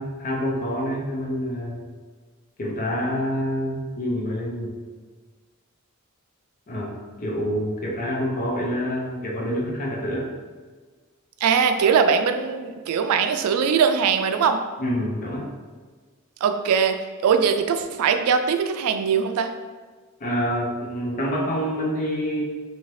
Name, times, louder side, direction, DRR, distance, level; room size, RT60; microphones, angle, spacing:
voice 1, 0.0-1.8 2.6-4.8 6.7-10.3 14.8-15.5 20.2-22.4, equal, 40° left, -2 dB, 0.6 m, -27 dB
voice 2, 11.4-14.6 16.4-17.0 17.2-19.5, right 6 dB, 85° right, 11 dB, 0.3 m, -21 dB
2.7 x 2.7 x 3.1 m, 1.4 s
head